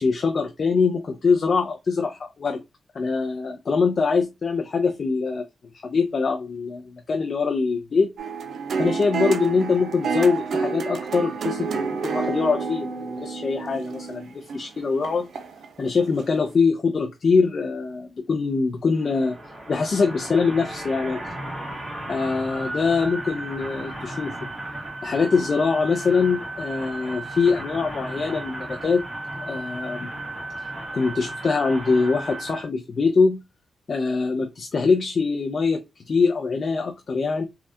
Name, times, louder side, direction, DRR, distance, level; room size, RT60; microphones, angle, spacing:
voice 1, 0.0-2.6 2.9-5.5 5.7-8.1 8.8-15.3 15.8-19.4 19.7-21.2 22.1-24.5 25.0-29.0 29.4-30.1 30.9-33.4 33.9-37.4, left 4 dB, 55° left, 0.5 m, -23 dB
sound 1, 8.2-15.7 16.2-16.3, right 5 dB, 70° right, 0.4 m, -29 dB
sound 2, 19.0-32.6, right 1 dB, 35° right, 1.6 m, -35 dB
3.3 x 2.3 x 2.6 m
cardioid pair, 75°, 0 cm